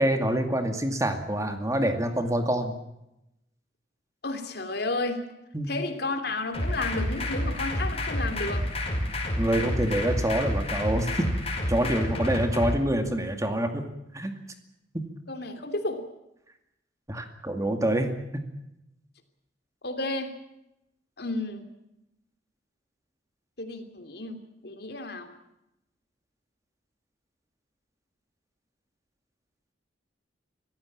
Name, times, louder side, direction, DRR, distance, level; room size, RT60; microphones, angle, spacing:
voice 1, 0.0-2.7 5.5-5.7 9.4-11.3 11.7-13.8 14.1-14.3 14.9-15.1 17.1-18.4, right 1 dB, 20° right, 6 dB, 2.3 m, -26 dB
voice 2, 4.2-5.2 5.7-8.7 15.3-16.0 19.8-20.3 21.2-21.6 23.6-25.3, left 2 dB, 60° left, 7 dB, 3.1 m, -32 dB
sound 1, 6.5-12.7, left 1 dB, 35° left, 5.4 m, -29 dB
25.5 x 16.0 x 8.8 m, 0.87 s
head